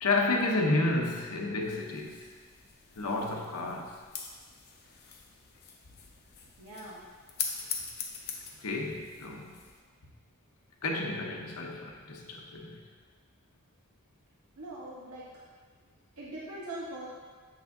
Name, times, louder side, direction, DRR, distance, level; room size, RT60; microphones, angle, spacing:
voice 1, 0.0-2.3 3.0-3.9 8.6-9.5 10.8-12.8, left 2 dB, 90° left, 1 dB, 0.8 m, -31 dB
sound 1, 1.6-9.8, left 6 dB, 45° left, 0.7 m, -42 dB
voice 2, 6.6-7.0 8.5-8.6 14.6-15.2 16.2-17.1, right 1 dB, 80° right, -6 dB, 1.0 m, -41 dB
7.3 x 6.0 x 2.6 m, 1.6 s
head